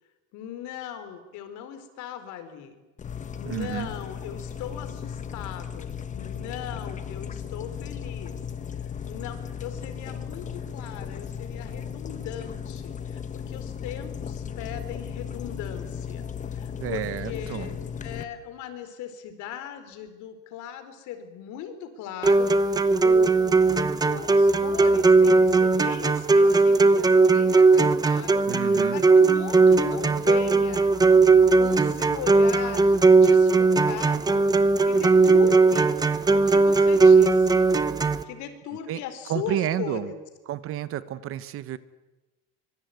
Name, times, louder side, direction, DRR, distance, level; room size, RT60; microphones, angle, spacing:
voice 1, 0.3-2.7 3.4-8.4 9.0-17.7 18.0-31.0 31.6-34.4 34.9-36.0 36.3-37.7 38.2-40.2, left 9 dB, 60° left, 10 dB, 4.4 m, -38 dB
sound 1, 3.0-18.2, left 7 dB, 20° left, 1.4 m, -36 dB
voice 2, 3.4-3.9 16.8-17.8 28.5-29.0 38.9-39.0 39.3-40.1 40.5-41.8, right 12 dB, 40° right, 15 dB, 1.1 m, -30 dB
sound 2, 22.2-38.2, right 3 dB, 10° right, 1.0 m, -18 dB
25.0 x 23.5 x 9.5 m, 1.1 s
cardioid pair, 165°, 33 cm